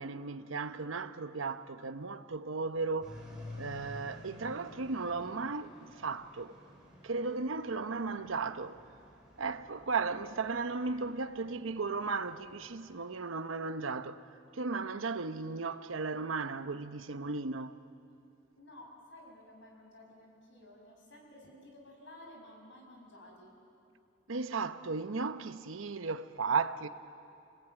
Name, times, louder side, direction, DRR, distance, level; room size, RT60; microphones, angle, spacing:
voice 1, 0.0-3.2 3.6-6.6 7.0-8.8 9.4-14.3 14.5-17.8 24.3-26.9, right 4 dB, 90° right, 0.9 m, -35 dB
sound 1, 3.0-12.9, left 1 dB, 5° right, 5.4 m, -52 dB
voice 2, 18.6-23.5, left 1 dB, 70° left, 5.9 m, -54 dB
27.5 x 20.0 x 9.1 m
head